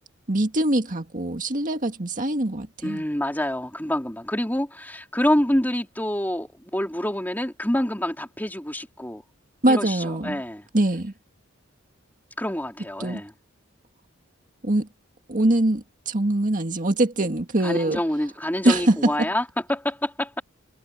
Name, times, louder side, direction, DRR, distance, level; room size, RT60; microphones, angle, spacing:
voice 1, 0.3-3.0 9.6-10.4 10.7-11.1 13.0-13.2 14.6-14.9 15.3-18.0 18.6-19.1, right 1 dB, 40° right, 2.0 m, -23 dB
voice 2, 2.8-9.2 9.7-10.6 12.4-13.3 17.6-20.4, left 1 dB, 10° left, 3.0 m, -27 dB
head